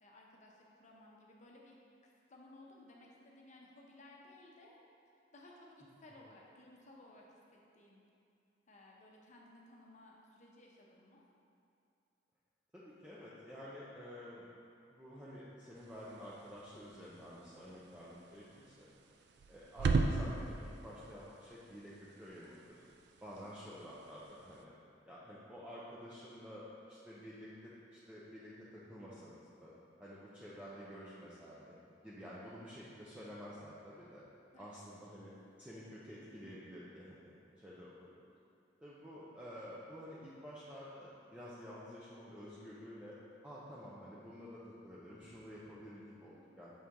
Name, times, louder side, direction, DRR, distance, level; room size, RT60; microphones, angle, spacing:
voice 1, 0.0-1.7 2.0-4.8 5.1-8.0 8.7-11.2 23.3-23.6 34.5-35.2, left 1 dB, 40° left, -2 dB, 0.8 m, -59 dB
voice 2, 12.7-14.5 14.9-18.9 19.5-22.8 23.2-24.7 25.1-29.7 30.0-31.7 32.0-34.2 34.6-35.3 35.6-37.3 37.6-38.3 38.8-43.2 43.4-46.7, equal, 5° right, -9 dB, 0.5 m, -50 dB
sound 1, 15.7-24.7, right 3 dB, 60° right, 0.3 m, -40 dB
6.3 x 4.4 x 3.5 m, 2.5 s
head